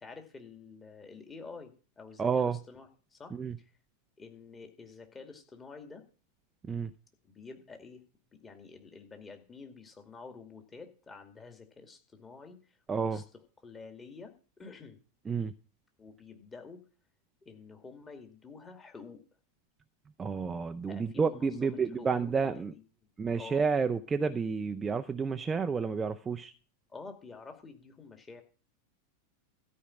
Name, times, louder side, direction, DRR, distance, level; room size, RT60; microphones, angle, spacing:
voice 1, 0.0-3.7 4.2-6.0 7.2-8.0 8.3-13.2 13.6-15.0 16.0-16.8 17.4-19.2 20.9-23.1 23.4-23.6 26.9-28.4, left 4 dB, 15° left, 2.2 m, -49 dB
voice 2, 2.2-2.6 3.3-3.6 6.7-6.9 12.9-13.2 15.3-15.5 20.2-22.7 23.2-26.5, right 5 dB, 15° right, 0.6 m, -30 dB
13.0 x 5.3 x 8.7 m
figure-of-eight pair, 90°, 0 cm